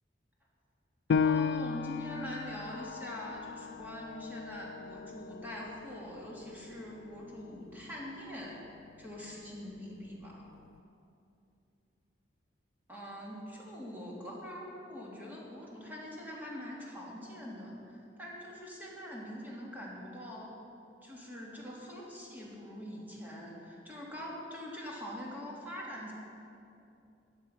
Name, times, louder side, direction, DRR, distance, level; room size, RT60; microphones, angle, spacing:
Piano, 1.1-6.3 6.7-6.8 7.4-7.9, left 6 dB, 70° left, 0.4 m, -34 dB
voice 1, 1.1-8.6 9.0-10.5 12.9-20.5 21.0-26.1, left 1 dB, 10° right, -5 dB, 2.7 m, -43 dB
15.0 x 10.5 x 5.8 m, 2.7 s
head